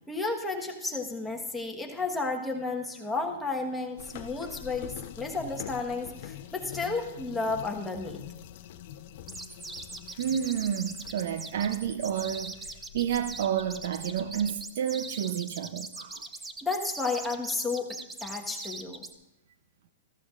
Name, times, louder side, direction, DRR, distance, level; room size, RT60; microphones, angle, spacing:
voice 1, 0.1-8.2 16.6-19.0, left 3 dB, 5° left, 1.4 m, -32 dB
sound 1, 4.0-14.6, left 10 dB, 55° left, 0.6 m, -45 dB
sound 2, 9.3-19.1, right 3 dB, 10° right, 0.6 m, -41 dB
voice 2, 10.2-12.6 12.9-16.2, right 9 dB, 65° right, 0.6 m, -30 dB
14.0 x 13.5 x 2.5 m
hypercardioid pair, 135°, 0 cm